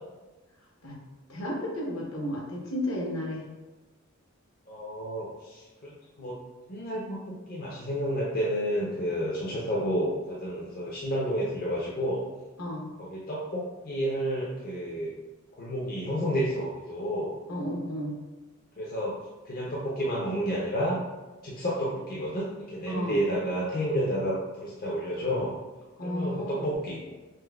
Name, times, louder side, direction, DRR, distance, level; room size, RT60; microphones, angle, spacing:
voice 1, 1.3-3.4 12.6-12.9 17.5-18.1 22.9-23.2 26.0-26.7, left 1 dB, 70° left, -3 dB, 0.9 m, -33 dB
voice 2, 4.7-6.4 6.7-12.2 13.0-15.1 15.5-17.3 18.8-19.2 19.5-21.0 21.4-25.6 26.0-27.1, equal, 45° left, -5 dB, 0.5 m, -30 dB
5.3 x 2.1 x 2.3 m, 1.1 s
head